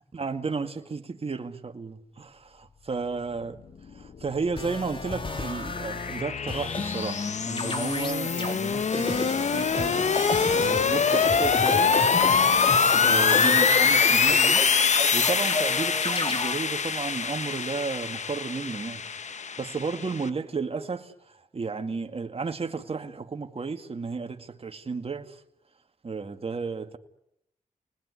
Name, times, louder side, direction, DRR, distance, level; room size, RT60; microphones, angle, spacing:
voice 1, 0.1-3.6 3.9-10.1 10.5-12.0 13.0-14.7 15.1-19.1 19.6-25.4 26.0-27.0, right 4 dB, 40° right, 2.1 m, -33 dB
sound 1, 4.2-20.3, left 6 dB, 50° left, 1.0 m, -24 dB
sound 2, 4.6-6.2 6.5-7.3 7.6-8.5 8.9-16.5, left 2 dB, 35° left, 3.1 m, -32 dB
29.0 x 20.5 x 9.8 m
cardioid pair, 70°, 15 cm